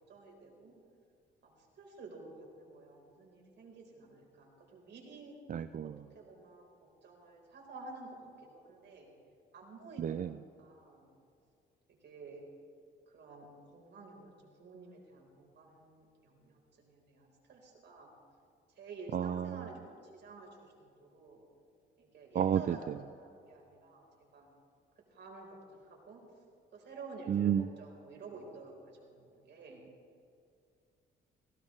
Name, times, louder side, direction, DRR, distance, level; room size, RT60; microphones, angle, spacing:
voice 1, 0.1-0.7 1.4-5.4 5.8-6.7 7.0-8.2 8.5-9.1 9.5-11.1 12.0-12.4 13.1-14.3 14.6-18.1 18.8-21.5 22.0-24.1 24.3-24.5 25.1-26.2 26.7-29.8, right 3 dB, 60° right, 0 dB, 4.3 m, -51 dB
voice 2, 5.5-5.9 10.0-10.3 19.1-19.4 22.4-22.6 27.3-27.7, right 9 dB, 45° right, 12 dB, 0.4 m, -30 dB
18.5 x 17.0 x 3.3 m, 2.4 s
cardioid pair, 90°, 20 cm